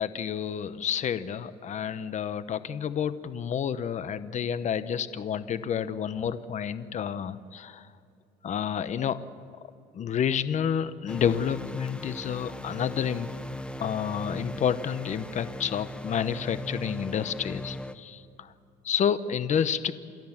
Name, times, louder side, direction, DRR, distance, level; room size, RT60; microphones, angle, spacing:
voice 1, 0.0-7.9 8.4-9.2 9.9-13.3 13.8-18.5 18.8-19.9, left 8 dB, 45° left, 14 dB, 0.9 m, -29 dB
sound 1, 11.1-17.9, left 1 dB, 5° left, 0.9 m, -38 dB
28.5 x 13.0 x 7.3 m, 2.5 s
cardioid pair, 110°, 17 cm